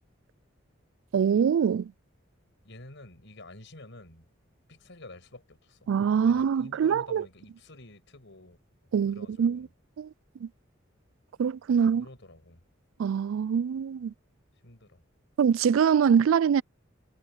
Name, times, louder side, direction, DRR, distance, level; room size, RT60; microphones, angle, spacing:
voice 1, 1.1-1.9 5.9-7.2 8.9-9.7 10.0-10.1 10.4-10.5 11.4-12.0 13.0-14.1 15.4-16.6, right 7 dB, 80° right, 0.3 m, -24 dB
voice 2, 2.6-4.3 4.7-5.9 6.2-8.6 9.1-9.7 11.7-12.6 14.6-15.0, left 2 dB, 65° left, 6.2 m, -49 dB
head